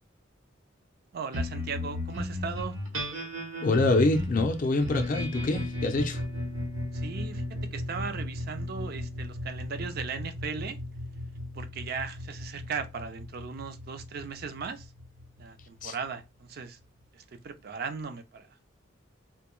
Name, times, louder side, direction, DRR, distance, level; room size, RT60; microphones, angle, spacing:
voice 1, 1.1-2.8 6.9-10.8 11.5-14.9 15.4-16.8 17.1-18.7, right 5 dB, 50° right, 0.4 m, -37 dB
sound 1, 1.3-16.0, left 1 dB, 80° right, 1.0 m, -35 dB
voice 2, 3.6-6.2 15.8-15.9, left 2 dB, 40° left, 0.4 m, -25 dB
2.2 x 2.1 x 3.0 m
head